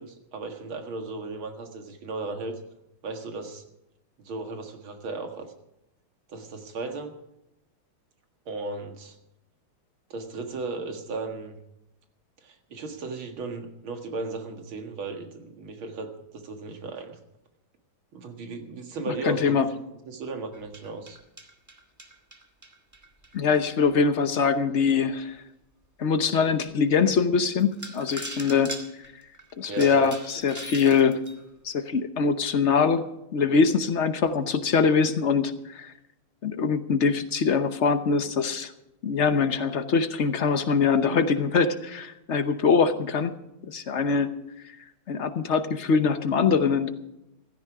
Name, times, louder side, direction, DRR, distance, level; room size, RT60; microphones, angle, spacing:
voice 1, 0.0-2.6 3.0-3.6 4.2-5.5 6.3-7.1 8.5-9.2 10.1-11.6 12.4-17.2 18.1-19.5 20.1-21.2 29.7-30.1, right 3 dB, 85° right, 5 dB, 2.6 m, -35 dB
voice 2, 19.1-19.6 23.3-25.4 26.0-28.7 29.6-31.2 31.6-33.0 33.3-35.9 36.4-38.7 39.0-43.4 43.7-44.3 45.1-46.9, left 5 dB, 50° left, 10 dB, 0.9 m, -23 dB
sound 1, 20.5-24.0 24.6-24.7 25.2-25.3 25.8-25.9 27.1-27.2 27.6-31.4, right 1 dB, 10° right, 1.3 m, -41 dB
16.0 x 13.5 x 4.8 m, 0.88 s
omnidirectional pair, 2.2 m